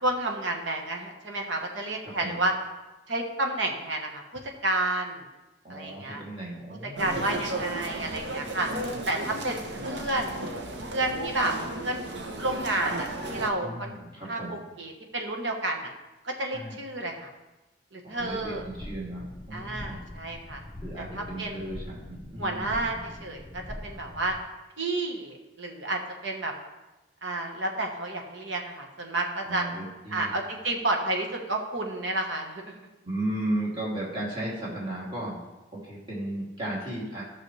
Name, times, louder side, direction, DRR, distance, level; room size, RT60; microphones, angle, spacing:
voice 1, 0.0-2.5 3.1-5.2 5.7-6.2 7.0-8.7 9.0-10.4 10.9-11.5 11.8-12.0 12.4-13.9 14.3-15.9 16.2-17.3 17.9-18.6 19.5-20.6 21.0-21.9 22.4-24.4 24.8-26.5 27.2-29.6 30.1-32.8, right 2 dB, 85° right, 2 dB, 1.4 m, -30 dB
voice 2, 2.0-2.4 5.6-7.3 13.6-14.6 16.5-16.8 18.0-20.0 20.8-22.8 29.4-30.4 33.0-35.4 35.7-37.2, right 1 dB, 25° right, -7 dB, 2.9 m, -35 dB
sound 1, 7.0-13.5, right 2 dB, 70° right, 1.0 m, -34 dB
sound 2, 18.2-24.4, left 1 dB, 25° left, 0.6 m, -43 dB
13.5 x 6.3 x 3.3 m, 1.0 s
head